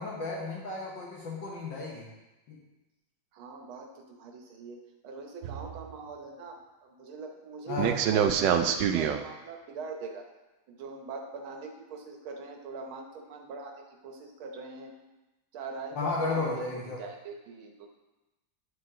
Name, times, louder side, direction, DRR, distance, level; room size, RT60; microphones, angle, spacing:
voice 1, 0.0-2.1 2.5-2.6 7.7-8.0 16.0-17.0, left 3 dB, 65° left, -3 dB, 1.8 m, -33 dB
voice 2, 3.3-10.3 10.7-14.9 15.5-17.9, right 4 dB, 90° right, 2 dB, 1.8 m, -42 dB
sound 1, 5.4-5.9 7.8-9.2, right 8 dB, 75° right, 1.1 m, -26 dB
10.0 x 4.9 x 3.7 m, 1.0 s
omnidirectional pair, 2.2 m